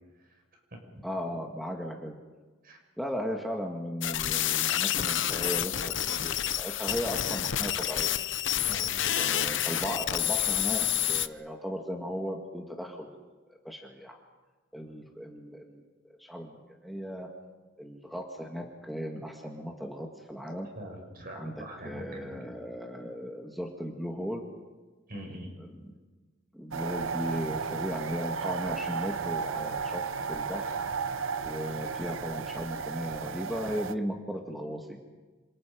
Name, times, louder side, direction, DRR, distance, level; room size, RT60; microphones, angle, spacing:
voice 1, 1.0-2.2 3.0-5.8 6.1-8.1 9.2-13.2 13.5-14.2 14.7-17.3 17.8-20.7 21.4-21.5 21.8-24.4 25.7-25.9 26.5-30.0 30.3-30.7 31.4-35.0, equal, ahead, 0 dB, 1.8 m, -36 dB
sound 1, 4.0-11.3, left 11 dB, 65° left, 0.8 m, -29 dB
voice 2, 8.6-8.9 20.8-22.4 25.1-25.5, equal, 50° right, 2 dB, 6.2 m, -43 dB
sound 2, 26.7-33.9, right 5 dB, 85° right, 0.8 m, -34 dB
28.0 x 27.5 x 5.2 m, 1.3 s
head